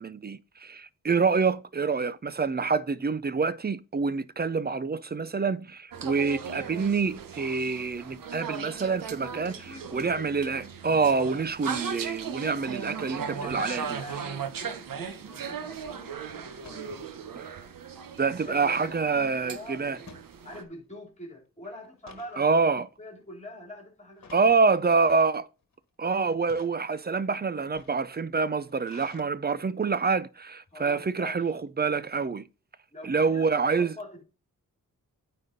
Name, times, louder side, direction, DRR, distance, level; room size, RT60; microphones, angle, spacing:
voice 1, 0.0-14.0 17.4-17.5 18.2-20.0 22.4-22.9 24.3-25.5 26.0-32.5 33.0-33.9, right 4 dB, 30° right, 0.5 m, -26 dB
sound 1, 5.9-20.6, right 6 dB, 80° right, 1.1 m, -38 dB
voice 2, 9.3-9.9 13.3-17.1 18.4-20.1 20.4-22.6 23.0-24.3 30.7-31.6 32.9-34.2, left 1 dB, 20° left, 3.7 m, -44 dB
sound 2, 14.8-15.2 16.6-16.9 17.4-17.5 17.7-18.8 20.1-20.9 21.2-21.4 21.8-22.4 23.0-23.2 24.2-24.6 25.3-25.8 26.3-26.8 27.5-29.2, left 5 dB, 55° left, 1.7 m, -52 dB
9.0 x 4.2 x 5.3 m
wide cardioid pair, 100°, 33 cm